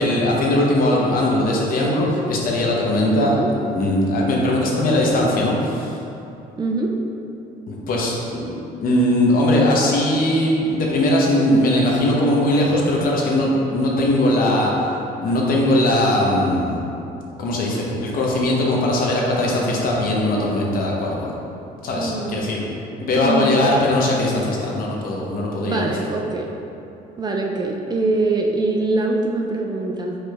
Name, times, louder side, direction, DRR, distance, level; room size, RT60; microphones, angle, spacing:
voice 1, 0.0-3.4 3.7-6.0 7.7-8.5 8.8-14.7 15.2-16.8 17.4-21.3 21.8-22.6 23.0-25.9, left 1 dB, 60° left, -2 dB, 0.9 m, -20 dB
voice 2, 3.1-3.5 6.6-6.9 22.0-22.5 23.1-23.6 25.6-26.5 27.2-30.2, right 2 dB, 25° right, 0 dB, 0.4 m, -23 dB
4.8 x 4.6 x 2.4 m, 2.8 s
cardioid pair, 110°, 17 cm